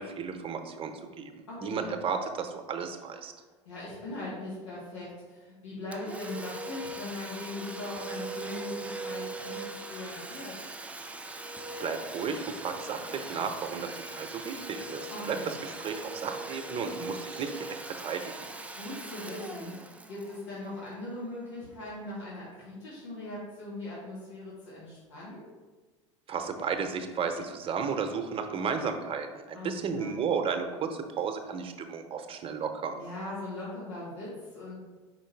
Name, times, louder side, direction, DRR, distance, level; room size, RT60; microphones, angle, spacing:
voice 1, 0.0-1.3 1.6-3.3 11.8-15.4 15.8-17.7 18.0-18.3 26.3-30.9 31.2-32.9, right 6 dB, 40° right, 6 dB, 0.8 m, -33 dB
voice 2, 1.5-1.9 3.6-10.5 15.1-15.5 18.8-25.5 29.5-30.1 33.0-34.8, left 2 dB, 85° left, -8 dB, 1.7 m, -40 dB
Domestic sounds home sounds, 5.9-21.4, right 2 dB, 10° right, 0.5 m, -40 dB
4.7 x 4.5 x 4.5 m, 1.3 s
hypercardioid pair, 80°, 15 cm